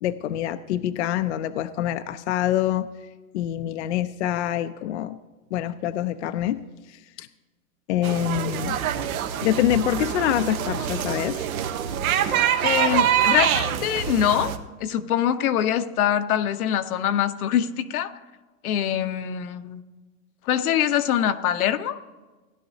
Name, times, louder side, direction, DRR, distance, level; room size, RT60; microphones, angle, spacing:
voice 1, 0.0-2.9 3.3-5.2 5.5-6.6 6.9-7.3 7.9-8.8 9.4-11.4, left 12 dB, 55° left, 10 dB, 0.5 m, -25 dB
sound 1, 8.0-14.6, right 9 dB, 75° right, 1.1 m, -25 dB
voice 2, 12.6-14.5 14.8-18.1 18.6-19.8 20.5-22.0, left 10 dB, 85° left, 9 dB, 0.9 m, -24 dB
16.0 x 11.0 x 2.7 m, 1.3 s
supercardioid pair, 170°, 42 cm